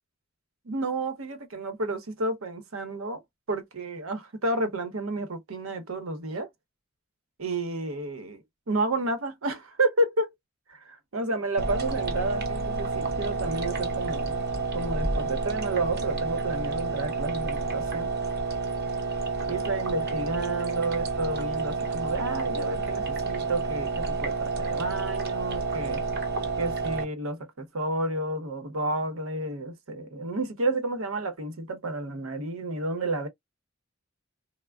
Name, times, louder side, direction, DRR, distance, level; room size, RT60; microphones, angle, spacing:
voice 1, 0.6-3.2 3.5-6.5 7.4-10.3 10.7-14.4 14.7-18.1 19.5-26.0 26.6-33.3, right 2 dB, 90° right, 0.9 m, -31 dB
sound 1, 11.6-27.0, right 4 dB, 50° right, 0.8 m, -30 dB
3.4 x 2.1 x 2.2 m
head